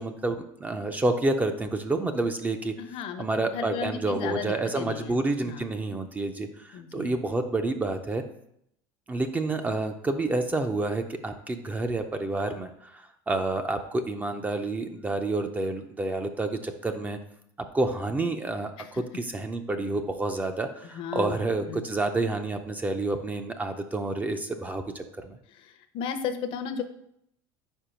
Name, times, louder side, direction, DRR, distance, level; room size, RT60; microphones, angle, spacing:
voice 1, 0.0-2.7 3.2-8.2 9.1-17.2 17.7-25.4, right 2 dB, 15° right, 6 dB, 0.5 m, -29 dB
voice 2, 2.8-5.1 5.5-5.7 6.7-7.1 18.8-18.9 20.9-21.4 21.7-21.8 25.6-26.8, left 7 dB, 55° left, 9 dB, 0.7 m, -34 dB
4.7 x 4.5 x 5.0 m, 0.73 s
supercardioid pair, 120°, 11 cm